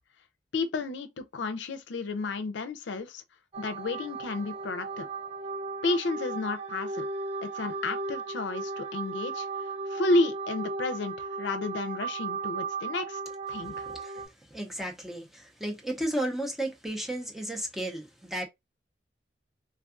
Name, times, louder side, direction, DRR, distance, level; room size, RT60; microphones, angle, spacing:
voice 1, 0.5-3.2 3.6-5.1 5.8-7.1 7.4-9.5 9.9-13.2 13.5-13.9, left 3 dB, 75° left, 0.5 m, -31 dB
sound 1, 3.5-14.2, right 4 dB, 35° right, 0.8 m, -36 dB
voice 2, 13.7-14.2 14.5-18.4, right 1 dB, ahead, 0.6 m, -34 dB
3.5 x 2.3 x 2.4 m
head